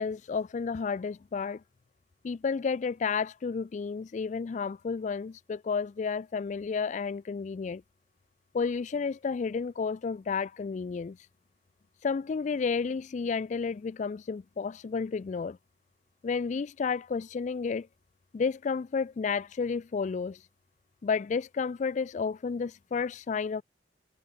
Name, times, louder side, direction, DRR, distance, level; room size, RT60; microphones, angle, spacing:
voice 1, 0.0-1.6 2.2-7.8 8.5-11.2 12.0-15.6 16.2-17.9 18.3-20.4 21.0-23.6, left 5 dB, 40° left, 0.3 m, -31 dB
head